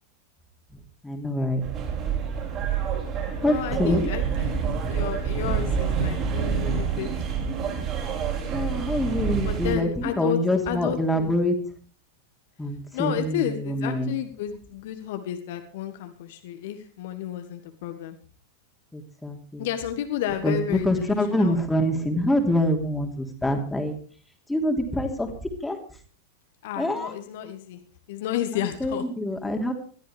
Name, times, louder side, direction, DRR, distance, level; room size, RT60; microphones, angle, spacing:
voice 1, 1.0-1.6 3.4-4.0 8.5-11.5 12.6-14.1 18.9-19.7 20.4-23.9 24.5-25.3 25.6-25.8 26.8-27.1 28.5-29.7, left 1 dB, 5° left, 3 dB, 3.0 m, -25 dB
sound 1, 1.6-9.8, right 7 dB, 35° right, 6.0 m, -27 dB
voice 2, 3.4-7.1 9.4-10.4 10.7-11.3 12.9-18.2 19.6-21.6 26.6-27.8 28.1-29.0, left 11 dB, 55° left, 8 dB, 1.6 m, -31 dB
21.5 x 13.5 x 3.4 m, 0.42 s
figure-of-eight pair, 90°, 0 cm